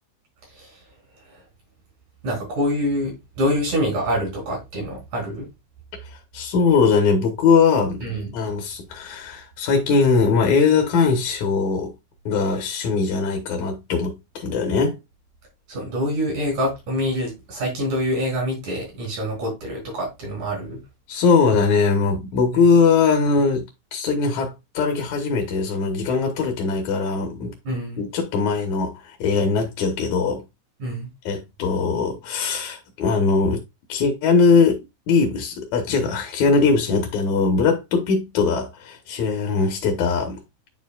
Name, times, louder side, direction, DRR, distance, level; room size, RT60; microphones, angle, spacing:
voice 1, 2.2-5.5 8.0-8.3 15.7-20.8 27.7-28.0 30.8-31.1, equal, 75° right, 5.4 m, -26 dB
voice 2, 6.3-8.0 8.3-11.9 12.3-15.0 21.1-27.5 28.0-30.4 31.3-33.6 33.9-40.4, left 4 dB, 80° left, 2.6 m, -20 dB
10.0 x 4.5 x 2.4 m
omnidirectional pair, 3.3 m